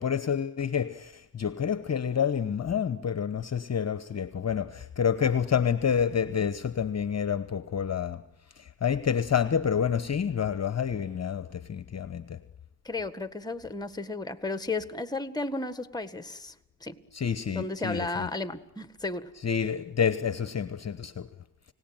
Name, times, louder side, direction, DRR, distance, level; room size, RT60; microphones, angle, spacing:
voice 1, 0.0-8.2 8.6-12.4 17.1-18.3 19.4-21.3, left 7 dB, 35° left, 1.1 m, -28 dB
voice 2, 12.8-16.5 16.8-17.0 17.5-19.3, left 2 dB, 10° left, 1.7 m, -34 dB
30.0 x 18.0 x 9.0 m
cardioid pair, 70°, 45 cm